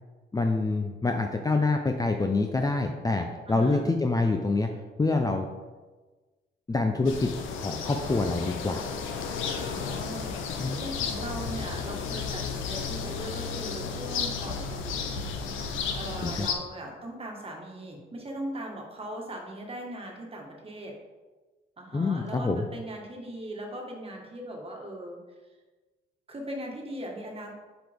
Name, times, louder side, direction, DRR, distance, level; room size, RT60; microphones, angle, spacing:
voice 1, 0.3-4.7 5.0-5.5 6.7-7.3 7.6-8.9 10.6-10.8 16.2-16.5 21.9-22.6, left 3 dB, 20° left, 4 dB, 0.5 m, -26 dB
voice 2, 3.5-3.9 9.5-15.0 15.9-21.0 21.8-25.2 26.3-27.5, right 1 dB, 30° right, 0 dB, 1.6 m, -39 dB
sound 1, 7.1-16.5, left 5 dB, 90° left, 0.8 m, -33 dB
7.5 x 4.9 x 3.5 m, 1.3 s
cardioid pair, 90°, 20 cm